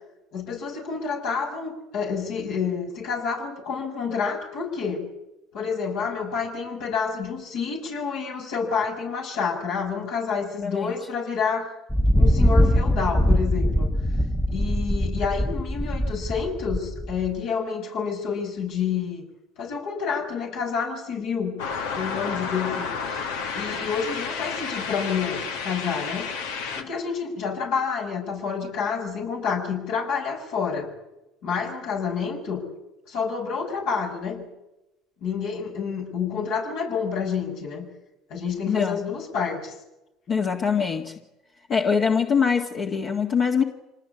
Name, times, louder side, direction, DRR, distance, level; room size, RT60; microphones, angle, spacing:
voice 1, 0.3-5.1 5.5-11.7 12.1-13.9 14.5-19.2 19.6-21.6 21.9-23.3 23.5-26.3 26.7-30.9 31.4-32.7 33.1-34.5 35.2-37.9 38.3-39.8, left 6 dB, 70° left, 1 dB, 7.3 m, -28 dB
voice 2, 10.6-10.9 38.7-39.0 40.3-41.1 41.7-43.6, left 6 dB, 45° left, 1 dB, 2.0 m, -23 dB
Thunder, 11.9-17.4, equal, 5° left, 1.2 m, -22 dB
sound 1, 21.6-26.8, left 5 dB, 90° left, 2.1 m, -31 dB
26.0 x 19.5 x 8.6 m, 0.96 s
supercardioid pair, 95°, 0 cm